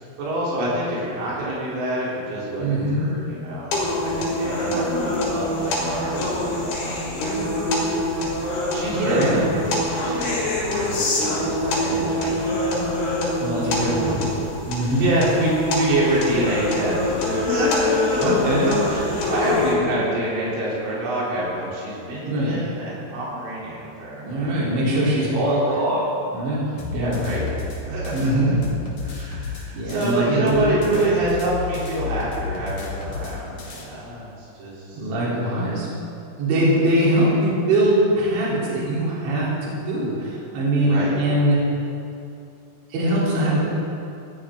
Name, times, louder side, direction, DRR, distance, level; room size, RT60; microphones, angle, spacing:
voice 1, 0.2-9.3 9.7-13.3 13.6-14.3 15.0-18.6 18.9-25.0 25.4-25.8 26.9-28.4 29.0-35.0 40.8-41.2, right 1 dB, 90° right, -7 dB, 6.2 m, -27 dB
voice 2, 2.6-3.0 8.9-9.5 13.4-14.2 14.7-15.1 18.2-18.8 22.2-22.6 24.2-26.0 26.3-27.2 28.1-28.6 29.7-31.0 34.9-35.9 36.4-41.6 42.9-43.6, right 1 dB, 70° right, -7 dB, 6.0 m, -22 dB
sound 1, 3.7-19.7, left 1 dB, 80° left, 6.3 m, -24 dB
sound 2, 26.8-30.2 30.5-33.9, left 5 dB, 50° left, 3.5 m, -32 dB
20.5 x 17.0 x 3.8 m, 2.6 s
omnidirectional pair, 5.5 m